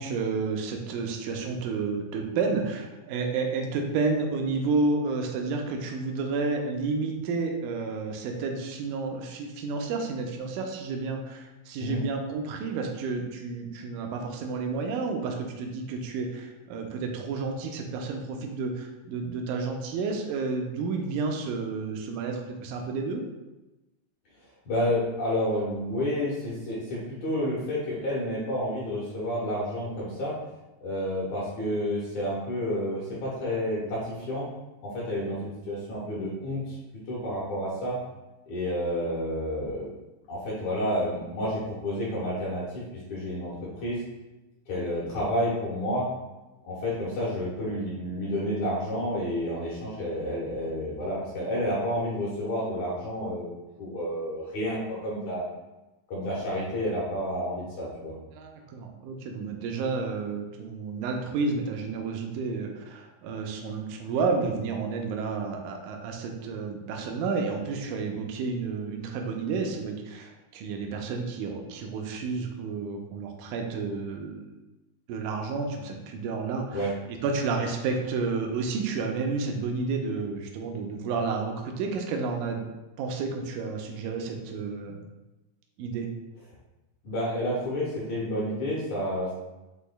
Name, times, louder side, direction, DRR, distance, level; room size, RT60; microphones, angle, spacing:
voice 1, 0.0-23.2 58.3-74.5 75.1-82.7 83.0-85.0 85.8-86.1, right 4 dB, 80° right, 2 dB, 1.9 m, -31 dB
voice 2, 24.7-30.3 30.8-34.5 34.8-36.8 37.1-38.0 38.5-39.9 40.3-44.0 44.7-46.1 46.6-53.5 53.8-55.4 56.1-58.1 76.7-76.9 87.0-89.3, equal, 65° left, -7 dB, 2.1 m, -30 dB
7.9 x 3.0 x 2.2 m, 1.0 s
omnidirectional pair, 4.0 m